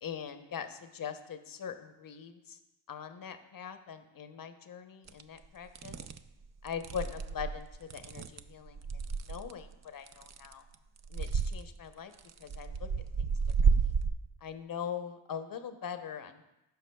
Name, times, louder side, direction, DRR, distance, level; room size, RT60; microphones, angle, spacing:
voice 1, 0.0-2.6 2.9-6.0 6.6-8.8 9.3-10.6 11.1-12.1 12.4-12.9 13.2-13.3 13.8-13.9 14.4-16.4, left 7 dB, 45° left, 9 dB, 0.8 m, -41 dB
sound 1, 5.1-5.2 5.7-6.2 6.7-9.5 10.1-10.7 11.0-11.6 12.2-14.1, right 5 dB, 35° right, 0.5 m, -31 dB
15.0 x 5.7 x 2.3 m, 0.96 s
cardioid pair, 65°, 48 cm